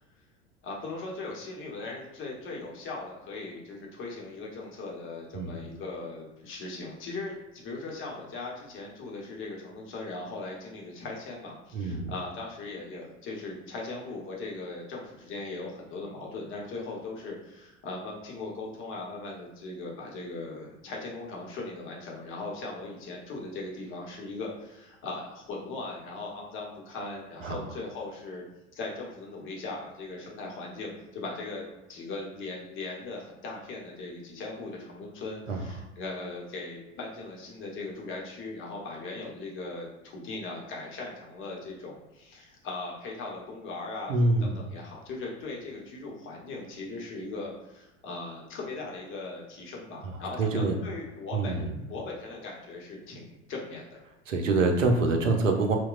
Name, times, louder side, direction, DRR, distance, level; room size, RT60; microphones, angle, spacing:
voice 1, 0.6-28.4 28.7-31.6 31.9-54.0, left 3 dB, 35° left, -2 dB, 0.8 m, -39 dB
voice 2, 11.7-12.1 27.4-27.6 35.5-35.6 44.1-44.6 50.0-50.8 51.3-51.8 54.3-55.8, right 3 dB, 85° right, 3 dB, 0.6 m, -26 dB
2.8 x 2.1 x 2.4 m, 1.0 s
figure-of-eight pair, 80°, 37 cm